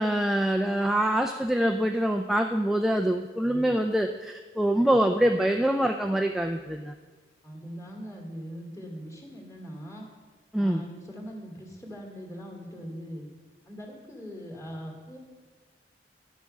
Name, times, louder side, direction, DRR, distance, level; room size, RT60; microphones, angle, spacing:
voice 1, 0.0-6.9 10.5-10.8, right 1 dB, ahead, 3 dB, 0.3 m, -25 dB
voice 2, 7.4-10.1 10.6-13.3 13.7-15.2, equal, 20° left, -1 dB, 2.4 m, -41 dB
11.0 x 6.9 x 6.4 m, 1.4 s
head